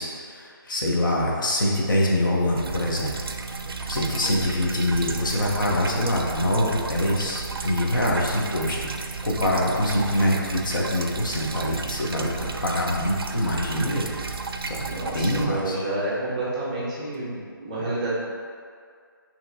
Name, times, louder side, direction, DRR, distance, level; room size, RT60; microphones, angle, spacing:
voice 1, 0.0-3.1 3.9-8.9 9.2-14.1 14.7-14.8 15.1-15.8, left 1 dB, 60° left, -3 dB, 0.9 m, -24 dB
sound 1, 2.5-15.5, right 4 dB, 75° right, 0.4 m, -33 dB
voice 2, 14.9-18.2, right 2 dB, 20° right, -8 dB, 0.7 m, -29 dB
5.7 x 2.9 x 2.7 m, 2.1 s
hypercardioid pair, 170°, 12 cm